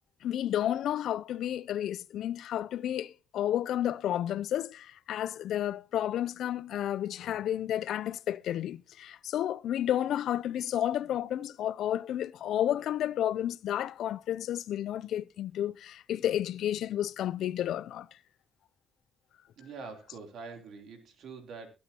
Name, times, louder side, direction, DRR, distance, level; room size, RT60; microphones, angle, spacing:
voice 1, 0.2-18.1, left 11 dB, 75° left, 0.5 m, -31 dB
voice 2, 19.6-21.7, right 4 dB, 70° right, 3.2 m, -45 dB
22.5 x 8.5 x 2.9 m
cardioid pair, 90°, 0 cm